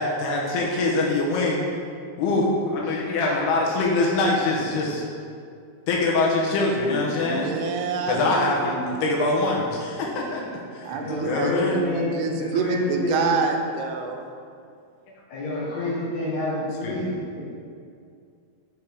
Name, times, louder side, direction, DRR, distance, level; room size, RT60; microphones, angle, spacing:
voice 1, 0.0-1.6 2.2-5.0 5.9-7.5 8.1-10.4 11.2-11.8 16.8-16.9, left 2 dB, 85° left, -3 dB, 3.1 m, -23 dB
voice 2, 2.8-3.5 10.8-13.4 15.3-17.5, left 1 dB, 60° left, -7 dB, 2.3 m, -29 dB
voice 3, 7.2-8.9 10.8-14.3, right 5 dB, 85° right, 3 dB, 2.5 m, -27 dB
7.2 x 5.1 x 4.7 m, 2.3 s
omnidirectional pair, 4.5 m